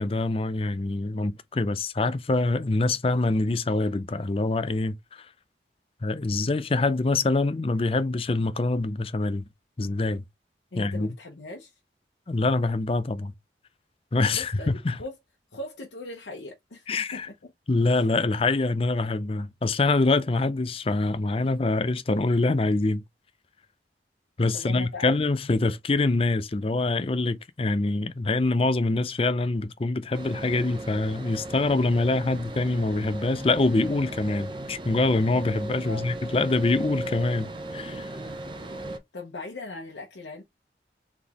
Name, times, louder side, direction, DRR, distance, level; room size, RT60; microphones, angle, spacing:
voice 1, 0.0-5.3 6.0-9.4 9.8-10.2 10.8-11.1 12.3-13.3 14.1-15.0 16.9-17.3 17.7-23.0 24.4-38.1, left 2 dB, 30° left, 0.5 m, -25 dB
voice 2, 10.7-11.7 14.4-15.1 15.5-17.5 24.5-25.1 35.9-36.2 39.1-40.4, left 2 dB, 90° left, 0.9 m, -39 dB
sound 1, 30.1-39.0, right 1 dB, 25° right, 0.6 m, -37 dB
4.0 x 3.5 x 2.9 m
head